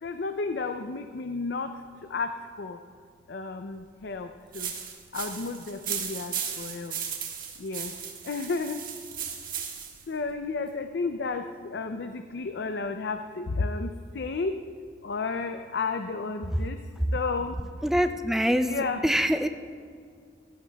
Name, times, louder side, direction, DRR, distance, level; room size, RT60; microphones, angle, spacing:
voice 1, 0.0-1.7 2.1-2.8 3.3-4.7 5.1-6.9 7.6-7.9 8.2-8.8 10.1-14.6 15.0-16.8 17.1-17.7 18.6-19.0, left 4 dB, 70° left, 7 dB, 0.5 m, -32 dB
sound 1, 4.5-10.0, right 8 dB, 50° right, 1.5 m, -36 dB
voice 2, 17.8-19.5, equal, ahead, 8 dB, 0.4 m, -25 dB
16.5 x 15.0 x 2.3 m, 2.2 s
head